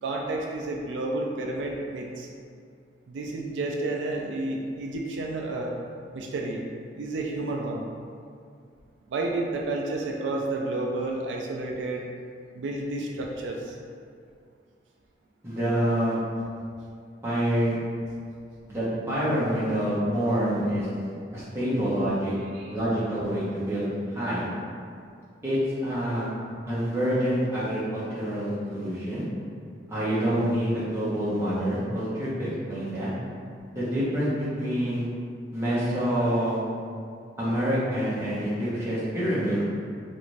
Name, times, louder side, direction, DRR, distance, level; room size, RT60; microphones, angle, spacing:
voice 1, 0.0-2.3 3.1-5.8 6.1-6.6 6.9-7.9 9.1-12.0 12.6-13.8 22.5-22.7, right 2 dB, 90° right, 0 dB, 0.3 m, -31 dB
voice 2, 15.4-16.2 17.2-17.8 18.7-20.9 21.3-22.3 22.7-24.5 25.4-26.3 26.7-29.2 29.9-33.1 33.7-35.0 35.5-36.6 37.4-39.6, equal, 15° right, -11 dB, 0.8 m, -27 dB
2.6 x 2.4 x 3.1 m, 2.3 s
head